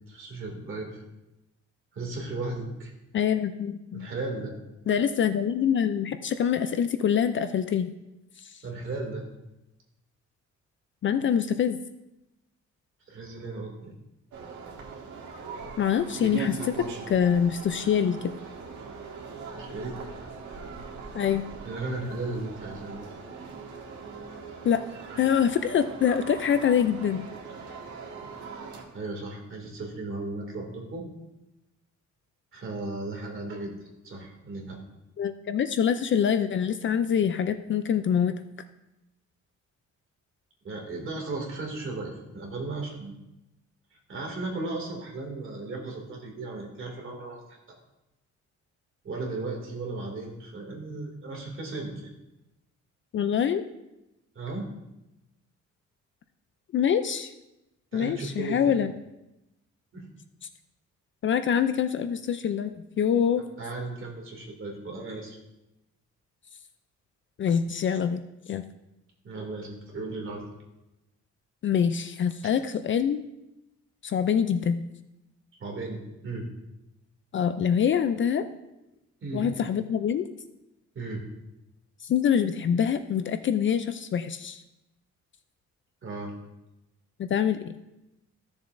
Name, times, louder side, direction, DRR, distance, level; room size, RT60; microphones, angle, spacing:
voice 1, 0.1-1.0 1.9-2.9 3.9-4.6 8.6-9.2 13.1-13.9 19.6-19.9 21.6-23.0 28.9-31.0 32.5-34.8 40.6-43.2 43.9-47.6 49.0-52.1 54.3-54.7 57.9-58.8 59.9-60.1 63.6-65.4 69.2-70.4 75.6-76.5 79.2-79.5 80.9-81.2 86.0-86.3, right 2 dB, 45° right, 0 dB, 2.4 m, -35 dB
voice 2, 3.1-4.1 4.9-7.9 8.4-8.5 11.0-11.8 15.8-16.8 17.1-18.3 21.1-21.4 24.6-24.8 25.2-27.3 35.2-38.3 53.1-53.6 56.7-57.3 57.9-58.9 61.2-63.4 67.4-68.2 68.5-68.6 71.6-73.2 74.0-74.8 77.3-78.4 79.3-80.3 82.1-84.6 87.2-87.7, left 8 dB, 45° left, 10 dB, 0.4 m, -25 dB
sound 1, 14.3-28.8, right 5 dB, 80° right, 1.8 m, -40 dB
15.0 x 7.1 x 2.6 m, 0.93 s
cardioid pair, 155°, 29 cm